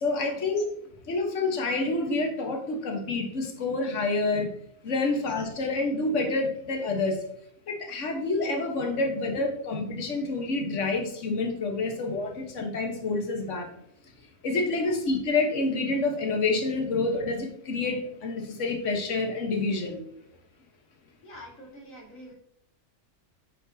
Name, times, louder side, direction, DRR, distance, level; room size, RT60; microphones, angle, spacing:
voice 1, 0.0-0.7 1.1-4.5 4.8-7.2 7.7-13.7 14.4-20.0, left 3 dB, 65° left, 3 dB, 1.6 m, -28 dB
voice 2, 21.2-22.3, equal, 85° left, -1 dB, 2.5 m, -46 dB
8.9 x 5.3 x 2.7 m, 0.71 s
omnidirectional pair, 1.4 m